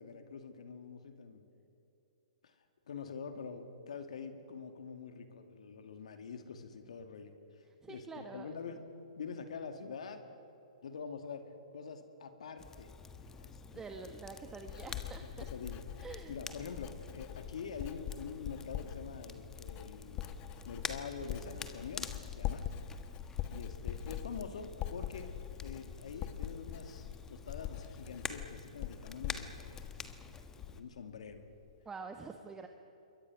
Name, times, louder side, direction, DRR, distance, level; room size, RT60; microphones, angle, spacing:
voice 1, 0.0-1.4 2.4-2.5 2.9-7.4 7.9-8.8 9.2-10.2 10.8-11.4 11.7-12.9 13.2-13.9 15.2-15.8 16.3-20.3 20.6-22.7 23.5-25.3 25.6-31.4, left 5 dB, 70° left, 7 dB, 2.4 m, -45 dB
voice 2, 7.8-8.5 13.7-15.4 16.0-16.3 31.8-32.7, right 4 dB, 15° right, 5 dB, 1.3 m, -46 dB
Crackle, 12.6-30.8, left 5 dB, 15° left, 1.4 m, -48 dB
Writing, 14.0-31.0 31.3-31.7, left 11 dB, 30° left, 1.4 m, -43 dB
27.0 x 22.5 x 6.3 m, 3.0 s
hypercardioid pair, 125°, 4 cm